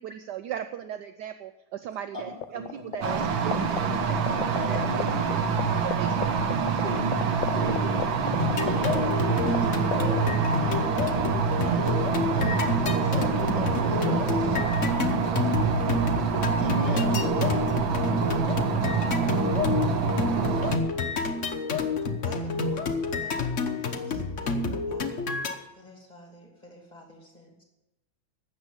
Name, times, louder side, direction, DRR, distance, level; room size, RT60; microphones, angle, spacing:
voice 1, 0.0-4.3 4.7-4.9 5.3-6.4, right 10 dB, 70° right, 9 dB, 1.1 m, -38 dB
sound 1, 2.4-3.0 3.2-5.3 5.6-5.7 5.9-9.6 9.8-10.2, left 12 dB, 85° left, 1.4 m, -30 dB
voice 2, 2.5-3.7 4.3-5.4 6.7-12.6 13.0-14.7 16.5-17.8, equal, 20° right, -2 dB, 3.3 m, -36 dB
sound 2, 3.0-20.8, right 5 dB, 85° right, 1.9 m, -26 dB
sound 3, 8.4-25.5, left 4 dB, 45° left, 1.2 m, -29 dB
voice 3, 22.2-25.3 25.7-27.6, left 1 dB, 20° left, 0 dB, 2.6 m, -50 dB
13.0 x 8.2 x 8.1 m, 0.97 s
omnidirectional pair, 2.1 m